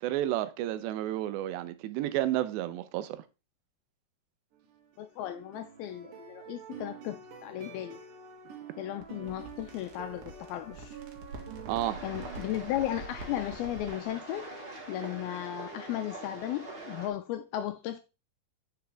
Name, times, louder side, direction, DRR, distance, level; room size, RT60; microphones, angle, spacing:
voice 1, 0.0-3.2 11.7-12.0, right 13 dB, 90° right, 3.0 m, -31 dB
sound 1, 4.5-12.5, right 6 dB, 55° right, 2.8 m, -48 dB
voice 2, 5.0-8.0 8.8-11.0 12.0-14.5 14.9-18.0, left 13 dB, 80° left, 2.2 m, -35 dB
sound 2, 9.0-14.1, right 2 dB, 75° right, 3.6 m, -46 dB
sound 3, 11.8-17.1, right 2 dB, 40° right, 0.8 m, -44 dB
8.9 x 6.5 x 3.4 m
omnidirectional pair, 4.8 m